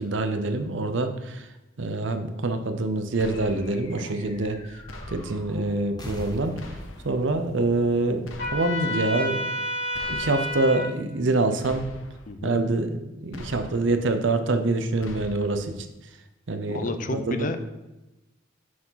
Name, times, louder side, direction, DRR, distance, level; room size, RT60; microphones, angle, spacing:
voice 1, 0.0-1.5 1.8-4.6 5.1-6.5 7.0-9.5 10.1-11.9 12.4-15.7 16.5-17.5, right 2 dB, 70° right, 8 dB, 0.7 m, -25 dB
sound 1, 3.2-3.9 4.9-5.6 6.6-7.3 8.2-8.9 9.9-10.6 11.6-12.3 13.3-14.0 15.0-15.7, left 1 dB, 85° left, 0.9 m, -42 dB
sound 2, 3.3-9.0, left 1 dB, 20° left, 0.9 m, -44 dB
Trumpet, 8.4-10.9, left 1 dB, 65° left, 2.5 m, -30 dB
voice 2, 16.7-17.7, left 2 dB, 40° left, 9 dB, 0.5 m, -31 dB
6.2 x 4.7 x 5.7 m, 1.0 s
head